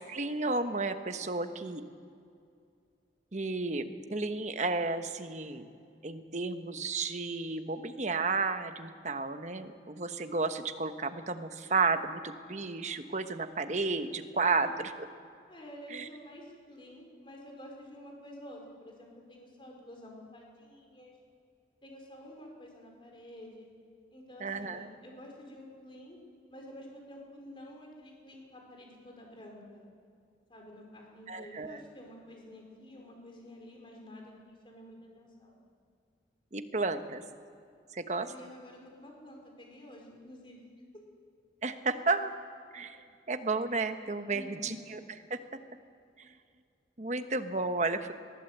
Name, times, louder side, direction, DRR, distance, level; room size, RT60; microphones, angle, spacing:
voice 1, 0.1-1.8 3.3-3.8 4.1-5.7 6.0-14.9 15.9-16.0 24.4-24.9 31.3-31.8 36.5-37.2 37.9-38.3 41.6-42.3 42.7-45.0 45.3-45.4 46.2-46.3 47.0-48.1, right 3 dB, 40° right, 8 dB, 1.1 m, -32 dB
voice 2, 14.4-14.8 15.5-21.2 21.8-23.7 24.1-26.2 26.5-29.8 30.5-35.6 38.2-41.0 44.3-44.8, left 1 dB, 30° left, 0 dB, 4.8 m, -50 dB
21.0 x 15.0 x 8.0 m, 2.4 s
head